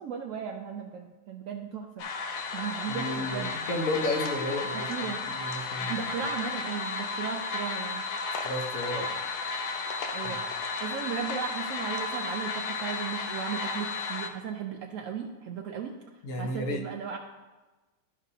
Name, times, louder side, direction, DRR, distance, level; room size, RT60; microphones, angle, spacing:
voice 1, 0.0-2.1 2.5-3.5 4.7-5.3 5.9-8.0 10.1-15.9 16.4-17.2, right 7 dB, 90° right, 2 dB, 0.7 m, -36 dB
sound 1, 2.0-14.3, left 4 dB, 80° left, 1.4 m, -33 dB
voice 2, 2.9-4.9 5.3-6.1 8.4-9.2 10.2-10.4 16.2-16.8, left 1 dB, 50° left, 2 dB, 1.2 m, -32 dB
12.5 x 5.3 x 2.7 m, 1.2 s
omnidirectional pair, 2.0 m